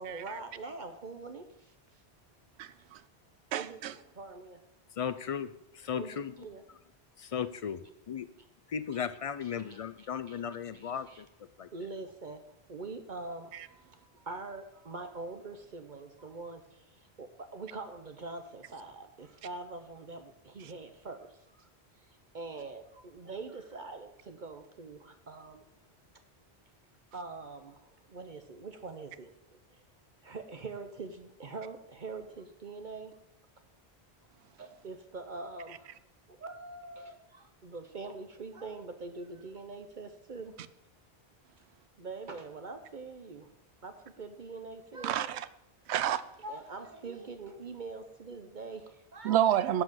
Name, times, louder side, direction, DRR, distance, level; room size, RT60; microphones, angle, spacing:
voice 1, 0.0-1.7 3.5-4.6 6.0-6.6 9.4-10.4 10.7-11.2 11.7-12.4 12.7-21.7 22.1-25.7 27.1-29.8 30.2-33.2 34.6-36.0 36.3-40.6 42.0-43.5 43.8-45.4 46.4-49.5, right 3 dB, 50° right, 0.9 m, -44 dB
voice 2, 2.6-3.0 3.5-3.9 45.0-45.4 45.9-46.2 49.2-49.8, right 11 dB, 85° right, 0.9 m, -29 dB
voice 3, 5.0-6.3 7.2-7.8 8.1-8.3 8.7-11.3 11.6-11.7, left 7 dB, 60° left, 0.4 m, -36 dB
11.5 x 4.8 x 7.7 m
omnidirectional pair, 1.1 m